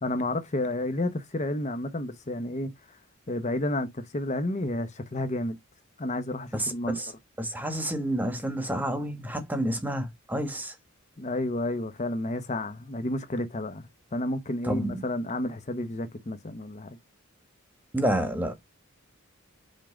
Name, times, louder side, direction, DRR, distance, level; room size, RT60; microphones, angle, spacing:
voice 1, 0.0-3.0 3.3-5.6 6.0-7.0 11.2-13.9 14.1-17.0, left 1 dB, 35° left, 0.8 m, -31 dB
voice 2, 6.5-7.1 7.4-10.7 14.6-15.0 17.9-18.5, right 1 dB, 10° right, 1.2 m, -29 dB
5.4 x 3.6 x 4.9 m
head